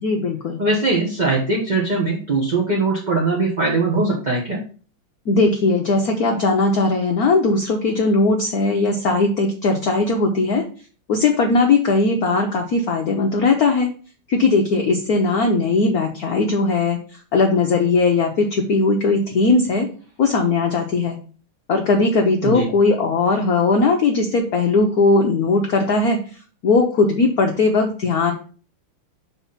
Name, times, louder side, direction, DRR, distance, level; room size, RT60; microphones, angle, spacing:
voice 1, 0.0-0.6 5.3-10.6 11.1-13.9 14.3-17.0 17.3-19.9 20.2-21.2 21.7-26.2 26.6-28.3, left 3 dB, 60° left, 2 dB, 1.1 m, -18 dB
voice 2, 0.6-4.6 22.4-22.7, right 3 dB, 25° right, -3 dB, 1.0 m, -20 dB
5.8 x 4.0 x 5.7 m, 0.40 s
omnidirectional pair, 2.3 m